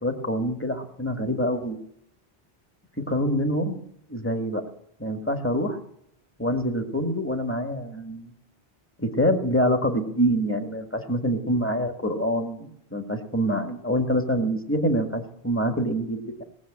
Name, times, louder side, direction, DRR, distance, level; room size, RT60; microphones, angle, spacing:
voice 1, 0.0-1.8 3.1-3.8 4.1-4.6 5.0-5.8 6.4-8.3 9.0-16.4, equal, 10° left, 4 dB, 1.7 m, -26 dB
19.5 x 7.3 x 8.8 m, 0.74 s
omnidirectional pair, 1.1 m